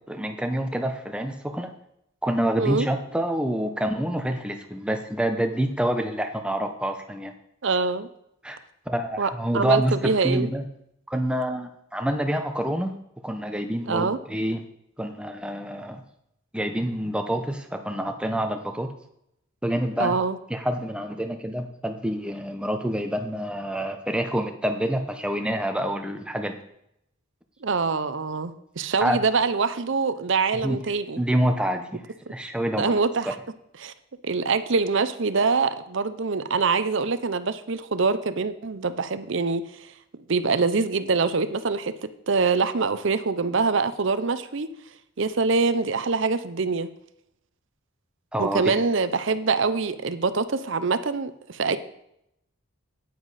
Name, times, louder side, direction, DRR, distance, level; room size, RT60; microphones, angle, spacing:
voice 1, 0.0-1.7 2.2-7.3 8.4-8.6 8.9-9.9 10.2-10.7 11.1-13.0 13.2-14.6 15.0-16.0 16.5-18.9 19.6-20.2 20.5-26.6 29.0-29.2 30.6-30.8 31.2-32.0 32.3-32.9 48.3-48.8, right 1 dB, 5° right, 6 dB, 0.8 m, -27 dB
voice 2, 2.6-2.9 7.6-8.1 9.2-10.5 13.9-14.2 20.0-20.4 27.6-31.2 32.8-33.3 33.8-33.9 34.2-39.9 40.3-41.9 42.3-44.7 45.2-46.9 48.4-51.8, right 4 dB, 60° right, 12 dB, 0.6 m, -24 dB
9.5 x 9.4 x 4.2 m, 0.77 s
head